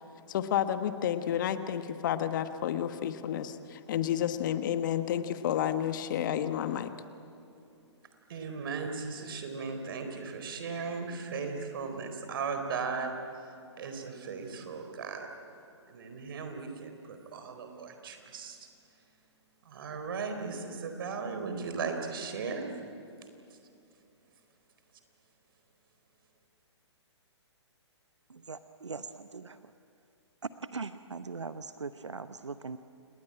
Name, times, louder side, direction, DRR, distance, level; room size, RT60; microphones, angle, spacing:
voice 1, 0.3-6.9, left 10 dB, 40° left, 10 dB, 1.3 m, -30 dB
voice 2, 8.3-13.1 13.8-15.3 15.9-18.7 19.6-22.7, right 5 dB, 50° right, 6 dB, 4.3 m, -37 dB
voice 3, 28.3-29.7 30.4-32.8, right 4 dB, 75° right, 12 dB, 0.9 m, -40 dB
28.5 x 20.0 x 8.9 m, 2.7 s
figure-of-eight pair, 125°, 15 cm